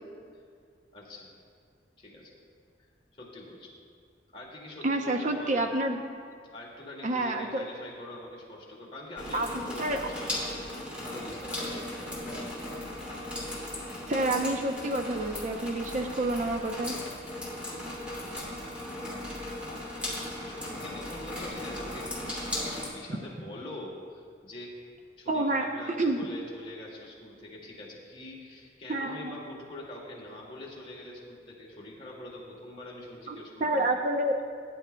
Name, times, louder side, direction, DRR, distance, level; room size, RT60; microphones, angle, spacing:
voice 1, 0.9-1.3 2.0-2.3 3.2-3.7 4.3-5.7 6.5-12.6 18.2-18.6 20.4-22.3 22.6-24.7 25.2-33.9, left 1 dB, 30° left, -4 dB, 2.1 m, -44 dB
voice 2, 4.8-6.0 7.0-7.6 9.3-9.5 9.8-10.0 14.1-16.9 25.3-25.7 26.0-26.2 28.9-29.3 33.3-34.4, right 2 dB, 45° right, 4 dB, 0.7 m, -28 dB
sound 1, 9.2-22.9, left 1 dB, 5° right, 2.7 m, -37 dB
17.5 x 10.5 x 2.3 m, 2.2 s
head